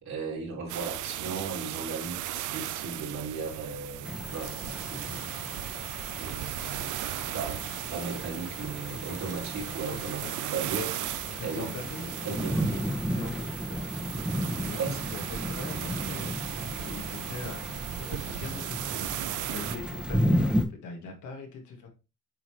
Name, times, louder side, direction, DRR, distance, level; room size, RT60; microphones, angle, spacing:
voice 1, 0.0-5.2 6.1-11.0 11.4-11.8 12.2-12.6 14.8-15.0, right 4 dB, 65° right, 3.1 m, -36 dB
sound 1, 0.7-19.8, right 14 dB, 85° right, 0.5 m, -37 dB
sound 2, 4.0-20.6, equal, 5° right, 1.1 m, -33 dB
voice 2, 9.8-10.3 11.4-12.1 12.4-12.8 13.1-13.8 14.4-16.3 16.8-21.9, left 4 dB, 80° left, 2.0 m, -42 dB
7.9 x 3.8 x 3.1 m
cardioid pair, 90°, 30 cm